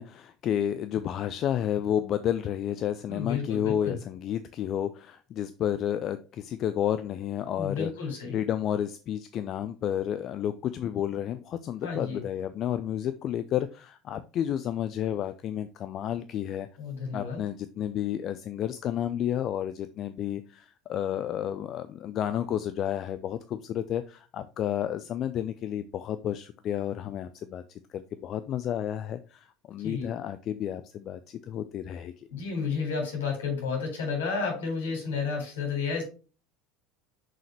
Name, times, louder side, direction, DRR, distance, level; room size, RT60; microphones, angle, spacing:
voice 1, 0.0-7.9 8.3-16.7 17.1-32.3, left 10 dB, 40° left, 12 dB, 0.5 m, -31 dB
voice 2, 3.1-3.9 7.6-8.4 11.8-12.2 16.8-17.4 29.8-30.1 32.3-36.0, left 5 dB, 70° left, 1 dB, 3.9 m, -31 dB
6.6 x 6.4 x 3.1 m, 0.33 s
figure-of-eight pair, 70°, 0 cm